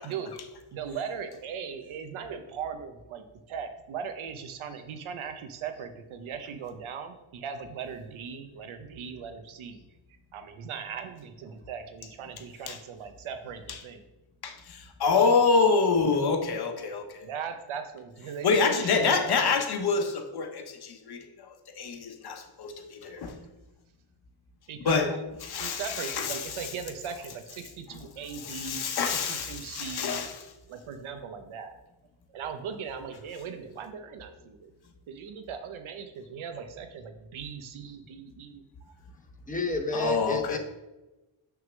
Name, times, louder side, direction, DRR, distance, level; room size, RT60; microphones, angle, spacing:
voice 1, 0.0-0.3 0.7-9.8 10.1-14.0 17.2-19.6 24.7-25.1 25.6-30.3 30.7-31.7 32.3-34.7 35.1-39.0, right 7 dB, 80° right, 7 dB, 0.8 m, -39 dB
voice 2, 14.4-17.3 18.4-23.3 24.8-25.1 25.5-26.5 28.4-30.4 39.9-40.6, left 4 dB, 50° left, 6 dB, 0.9 m, -27 dB
voice 3, 39.5-40.6, left 2 dB, 15° left, 5 dB, 0.8 m, -30 dB
6.3 x 3.6 x 6.0 m, 1.0 s
wide cardioid pair, 140°, 48 cm